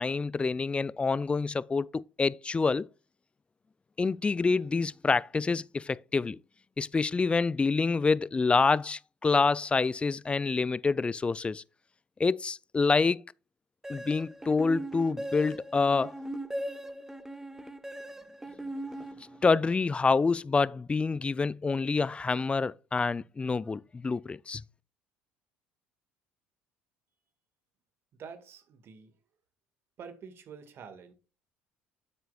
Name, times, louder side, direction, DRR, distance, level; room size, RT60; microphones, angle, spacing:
voice 1, 0.0-2.9 4.0-6.4 6.8-11.6 12.2-13.2 13.9-16.1 19.4-24.6, left 4 dB, 20° left, 0.4 m, -27 dB
sound 1, 13.8-19.7, right 1 dB, 10° right, 1.1 m, -39 dB
voice 2, 28.2-29.1 30.0-31.1, right 6 dB, 50° right, 1.8 m, -47 dB
9.6 x 7.8 x 2.4 m
hypercardioid pair, 65°, 5 cm